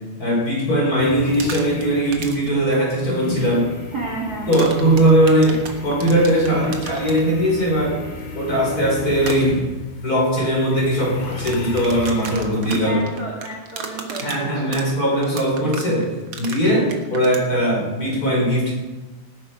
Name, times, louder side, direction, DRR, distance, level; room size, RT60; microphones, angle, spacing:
voice 1, 0.2-3.7 4.5-8.0 8.3-9.6 9.9-13.0 14.2-16.1 16.4-18.7, right 1 dB, 20° left, -3 dB, 4.5 m, -19 dB
sound 1, 1.0-12.9, left 2 dB, 45° left, 2.6 m, -34 dB
sound 2, 1.2-1.8 2.1-2.5 4.5-7.2 9.2-9.4 11.2-17.4, right 6 dB, 70° right, 1.2 m, -33 dB
voice 2, 3.9-4.6 12.7-14.7, right 2 dB, 35° right, -3 dB, 1.8 m, -30 dB
19.0 x 9.9 x 5.0 m, 1.2 s
omnidirectional pair, 4.6 m